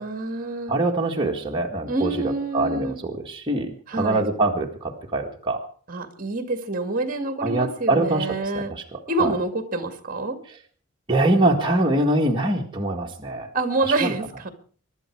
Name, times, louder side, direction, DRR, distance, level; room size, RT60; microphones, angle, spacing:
voice 1, 0.0-0.8 1.9-3.0 3.9-4.2 5.9-8.7 9.1-10.4 13.5-14.5, right 2 dB, 40° right, 7 dB, 2.2 m, -27 dB
voice 2, 0.7-2.1 2.5-5.6 7.4-8.3 8.5-9.3 11.1-13.5 14.0-14.1, right 2 dB, 20° right, -1 dB, 1.9 m, -23 dB
24.0 x 11.0 x 4.8 m, 0.43 s
head